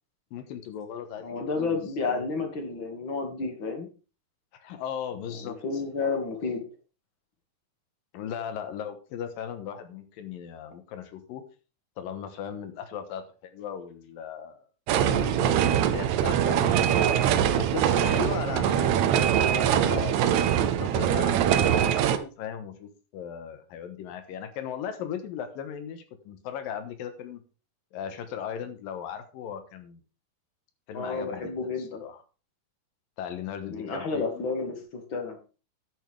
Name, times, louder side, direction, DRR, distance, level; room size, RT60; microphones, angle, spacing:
voice 1, 0.3-1.8 2.0-2.3 4.5-5.6 8.1-11.4 12.0-14.6 15.1-17.2 17.5-20.2 20.8-27.4 27.9-30.0 30.9-32.2 33.2-34.5, left 8 dB, 75° left, 9 dB, 2.8 m, -37 dB
voice 2, 1.2-3.9 5.4-6.7 30.9-32.0 33.7-35.4, left 4 dB, 40° left, 4 dB, 2.4 m, -31 dB
sound 1, 14.9-22.2, right 9 dB, 80° right, 1.6 m, -23 dB
11.0 x 9.3 x 3.5 m, 0.34 s
omnidirectional pair, 4.3 m